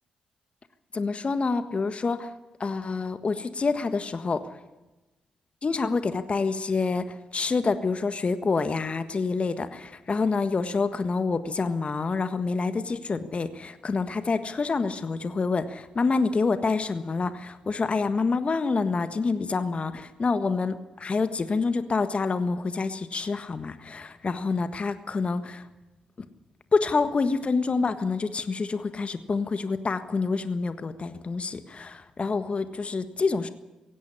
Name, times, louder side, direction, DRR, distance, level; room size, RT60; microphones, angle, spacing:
voice 1, 0.9-2.3 2.6-4.4 5.6-25.6 26.7-33.5, left 4 dB, 40° left, 11 dB, 1.5 m, -27 dB
17.5 x 16.5 x 10.0 m, 1.1 s
hypercardioid pair, 40°, 3 cm